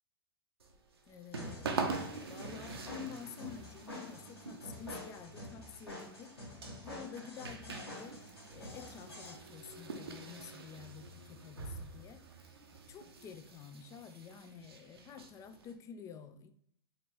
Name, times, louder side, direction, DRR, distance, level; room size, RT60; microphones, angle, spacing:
sound 1, 0.6-15.7, right 4 dB, 75° right, 0.7 m, -45 dB
voice 1, 1.1-1.7 2.3-6.3 6.8-8.2 8.5-12.2 12.9-16.5, left 7 dB, 25° left, 11 dB, 0.4 m, -49 dB
sound 2, 1.3-9.3, left 1 dB, 90° left, 1.3 m, -48 dB
5.1 x 2.9 x 3.0 m, 0.68 s
figure-of-eight pair, 100°, 13 cm